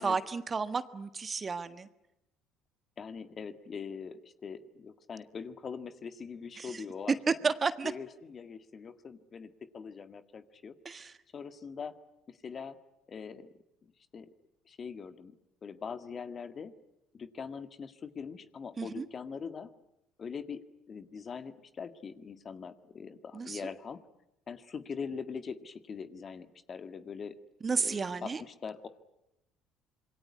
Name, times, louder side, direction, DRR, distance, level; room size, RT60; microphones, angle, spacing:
voice 1, 0.0-1.9 6.6-6.8 7.4-7.9 10.8-11.1 18.8-19.0 23.3-23.6 27.6-28.4, right 5 dB, 30° right, 12 dB, 1.5 m, -32 dB
voice 2, 3.0-7.5 7.8-10.8 11.3-12.0 12.3-12.8 13.1-13.5 13.8-14.3 14.7-15.4 15.6-16.7 17.1-19.7 20.2-20.6 20.9-24.0 24.5-27.4 27.8-28.9, left 6 dB, 40° left, 11 dB, 1.8 m, -42 dB
26.5 x 22.5 x 9.7 m, 0.86 s
hypercardioid pair, 60°, 0 cm